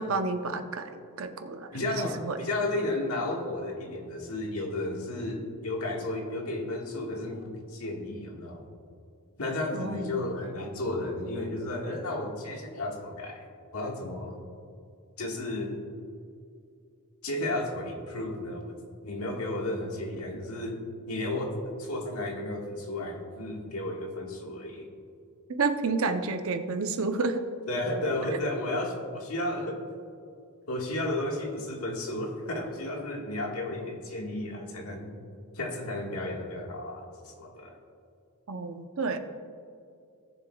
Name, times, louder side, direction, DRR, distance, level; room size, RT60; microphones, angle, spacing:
voice 1, 0.0-2.4 9.7-10.4 25.6-27.4 38.5-39.2, right 4 dB, 70° right, 7 dB, 0.7 m, -30 dB
voice 2, 1.7-8.7 9.4-13.4 13.7-14.4 15.2-15.8 17.2-18.8 19.0-20.8 21.1-24.9 27.7-29.8 30.7-35.1 35.5-37.7, left 1 dB, 80° left, 0 dB, 1.6 m, -33 dB
18.0 x 7.1 x 2.3 m, 2.4 s
head